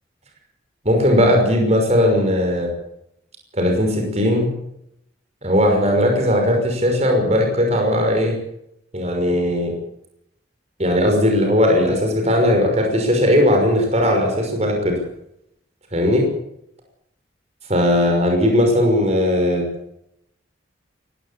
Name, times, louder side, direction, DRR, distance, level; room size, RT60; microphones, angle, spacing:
voice 1, 0.8-2.7 3.5-4.5 5.4-8.4 8.9-9.7 10.8-15.0 15.9-16.3 17.7-19.7, left 1 dB, 35° right, 2 dB, 5.8 m, -18 dB
19.0 x 17.0 x 8.5 m, 0.78 s
head